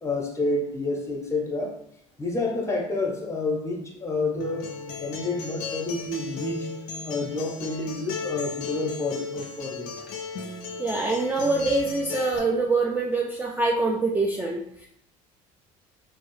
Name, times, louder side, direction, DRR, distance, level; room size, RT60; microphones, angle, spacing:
voice 1, 0.0-1.7 2.2-6.7 7.0-9.9, left 2 dB, 20° left, 0 dB, 0.7 m, -29 dB
Acoustic guitar, 4.4-12.4, left 4 dB, 65° left, 0.4 m, -35 dB
voice 2, 10.8-14.9, right 3 dB, 10° right, -2 dB, 0.3 m, -25 dB
2.2 x 2.0 x 3.0 m, 0.71 s
supercardioid pair, 75°, 16 cm